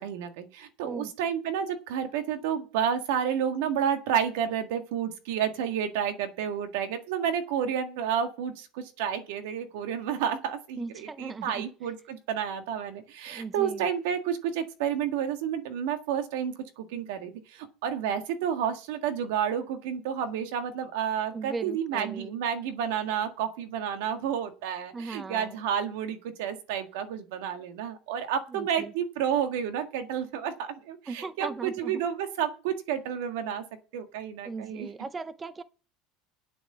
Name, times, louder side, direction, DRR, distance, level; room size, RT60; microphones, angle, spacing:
voice 1, 0.0-33.6 33.9-34.9, right 8 dB, 80° right, 1.7 m, -30 dB
voice 2, 0.8-1.1 10.8-11.7 13.3-13.9 21.3-22.4 24.9-25.7 28.5-28.9 31.1-32.0 34.4-35.6, right 4 dB, 15° right, 0.5 m, -38 dB
9.4 x 7.6 x 6.7 m
cardioid pair, 155°, 0 cm